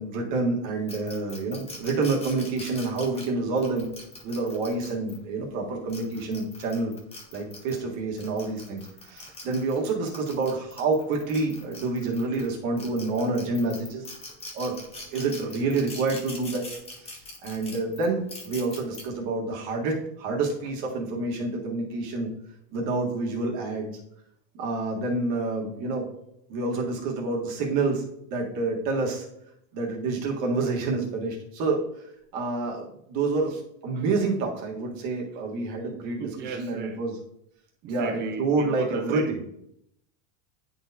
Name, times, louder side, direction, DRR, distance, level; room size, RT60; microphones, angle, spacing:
voice 1, 0.0-3.9 4.2-6.9 7.3-14.0 14.5-14.8 15.1-16.6 17.0-17.1 17.4-22.3 22.7-24.0 24.5-26.1 26.5-28.0 28.3-29.3 29.7-37.1 37.9-39.2, right 3 dB, 50° right, 1.6 m, -28 dB
sound 1, 0.9-5.2 5.7-7.8 8.2-12.5 12.8-19.0, left 2 dB, 15° left, 1.0 m, -42 dB
voice 2, 36.2-37.0 37.8-39.4, right 5 dB, 25° right, 0.4 m, -36 dB
10.0 x 4.2 x 2.8 m
supercardioid pair, 155°, 40 cm